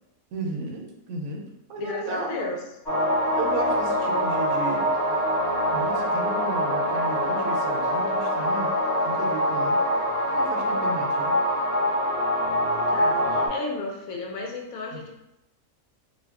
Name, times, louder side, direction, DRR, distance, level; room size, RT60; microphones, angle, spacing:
voice 1, 0.3-1.4 1.7-2.5 3.3-4.9 5.7-8.7 9.0-9.8 10.3-11.3 14.9-15.0, right 2 dB, 75° right, 1 dB, 1.0 m, -34 dB
voice 2, 1.8-2.6 12.9-15.1, left 3 dB, 75° left, 0 dB, 1.0 m, -33 dB
sound 1, 2.9-13.5, equal, 55° left, 1.2 m, -24 dB
2.6 x 2.2 x 3.4 m, 0.88 s
omnidirectional pair, 1.5 m